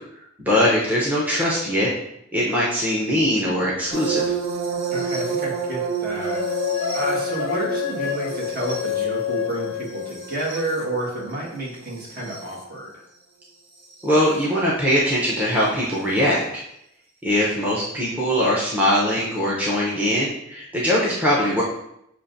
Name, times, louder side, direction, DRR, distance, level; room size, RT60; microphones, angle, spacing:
voice 1, 0.4-1.9 2.3-4.3 14.0-16.4 17.2-21.6, equal, 10° right, -6 dB, 0.7 m, -21 dB
sound 1, 3.9-12.6 13.9-14.2 15.9-16.0, right 6 dB, 75° right, 1.1 m, -30 dB
voice 2, 4.9-6.6 6.9-13.0, right 1 dB, 50° right, -4 dB, 1.5 m, -30 dB
sound 2, 6.2-10.7, left 11 dB, 70° left, 0.3 m, -28 dB
6.9 x 2.5 x 2.6 m, 0.78 s
head